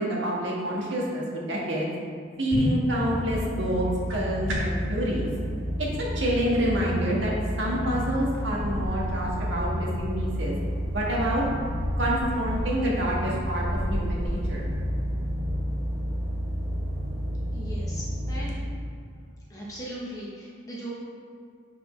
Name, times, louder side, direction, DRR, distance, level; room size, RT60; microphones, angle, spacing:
voice 1, 0.0-1.9 2.4-3.8 4.1-5.3 5.8-5.9 6.1-7.3 7.6-10.5 10.9-11.4 12.0-14.7, equal, 70° right, -4 dB, 1.6 m, -27 dB
sound 1, 2.1-4.9, equal, 85° right, 1.3 m, -32 dB
sound 2, 2.9-18.5, equal, 35° right, 0.9 m, -30 dB
sound 3, 8.3-17.3, equal, 45° left, 1.2 m, -38 dB
voice 2, 17.5-18.6 19.5-20.9, right 1 dB, 15° left, -6 dB, 1.0 m, -38 dB
9.8 x 4.7 x 3.2 m, 2.3 s
head